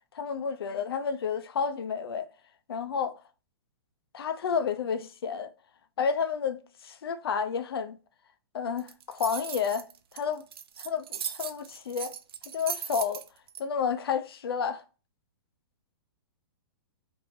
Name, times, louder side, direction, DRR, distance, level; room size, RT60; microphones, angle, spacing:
voice 1, 0.1-2.3 2.7-3.1 4.1-5.5 6.0-8.0 8.5-9.9 10.1-10.4 10.8-12.1 12.5-13.2 13.6-14.8, left 6 dB, 90° left, 0.5 m, -30 dB
sound 1, 8.8-13.6, right 8 dB, 85° right, 0.4 m, -38 dB
2.6 x 2.6 x 3.0 m
hypercardioid pair, 165°, 12 cm